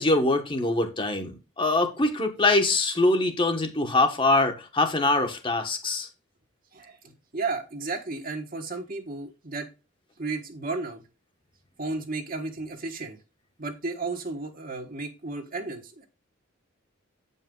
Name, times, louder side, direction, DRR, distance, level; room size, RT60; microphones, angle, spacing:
voice 1, 0.0-6.1, left 2 dB, 25° left, 1.2 m, -23 dB
voice 2, 6.7-9.7 10.2-11.0 11.8-13.2 13.6-16.0, right 3 dB, 45° right, 1.4 m, -33 dB
8.4 x 5.5 x 3.8 m
head